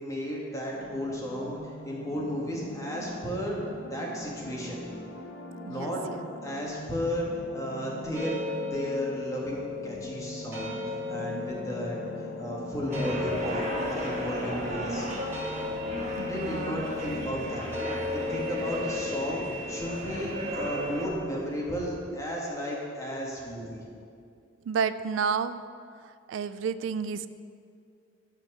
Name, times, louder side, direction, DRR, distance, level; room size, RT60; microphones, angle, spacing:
voice 1, 0.0-3.6 3.9-5.0 5.7-6.0 6.4-8.3 8.7-15.1 16.2-23.8, equal, 15° left, -3 dB, 1.6 m, -34 dB
sound 1, 0.7-18.0, left 1 dB, 75° left, 0.9 m, -43 dB
voice 2, 5.7-6.2 16.1-16.9 24.7-25.6 26.3-27.3, right 6 dB, 85° right, 13 dB, 0.3 m, -31 dB
sound 2, 8.1-19.9, left 4 dB, 15° right, 1.8 m, -36 dB
sound 3, 12.9-21.1, right 1 dB, 35° right, 1.6 m, -35 dB
11.5 x 4.5 x 6.1 m, 2.3 s
head